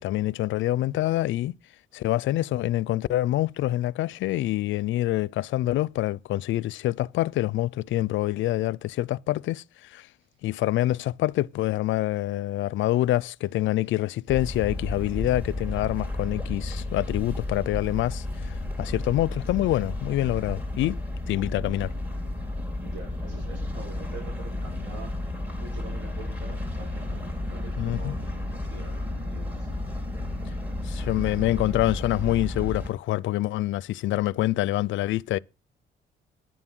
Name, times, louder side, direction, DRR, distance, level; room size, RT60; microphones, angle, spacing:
voice 1, 0.0-1.6 1.9-10.1 10.4-21.0 21.3-21.9 27.8-28.2 30.8-35.4, left 15 dB, 75° left, 0.4 m, -26 dB
sound 1, 14.3-32.9, left 2 dB, 10° right, 3.4 m, -32 dB
voice 2, 22.8-25.2 25.6-29.7 30.5-30.6, right 3 dB, 65° right, 5.4 m, -45 dB
10.5 x 7.5 x 6.1 m
cardioid pair, 90°, 20 cm